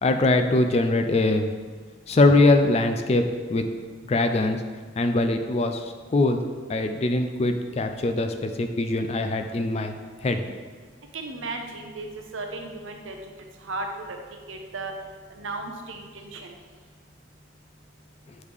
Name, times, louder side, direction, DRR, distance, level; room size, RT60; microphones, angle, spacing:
voice 1, 0.0-1.5 2.1-3.7 4.1-4.6 5.0-6.4 6.7-10.4, left 2 dB, 30° left, 7 dB, 0.3 m, -22 dB
voice 2, 11.1-12.1 12.3-13.2 13.6-14.2 14.5-14.9 15.3-16.5, right 3 dB, 80° right, 3 dB, 0.7 m, -35 dB
8.2 x 3.2 x 3.5 m, 1.5 s
head